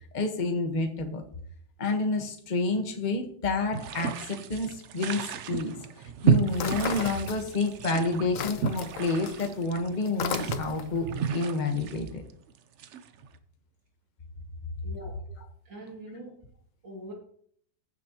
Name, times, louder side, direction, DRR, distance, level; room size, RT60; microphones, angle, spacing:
voice 1, 0.1-1.2 1.8-5.7 6.2-12.2, left 3 dB, 30° left, 5 dB, 1.1 m, -29 dB
sound 1, 3.7-13.3, right 7 dB, 90° right, 0.6 m, -32 dB
sound 2, 6.5-7.8 8.1-11.0, left 8 dB, 65° left, 0.9 m, -35 dB
voice 2, 14.8-15.1 15.6-16.4 16.8-17.1, right 1 dB, 70° right, -1 dB, 3.1 m, -43 dB
15.0 x 7.3 x 2.9 m, 0.63 s
omnidirectional pair, 2.0 m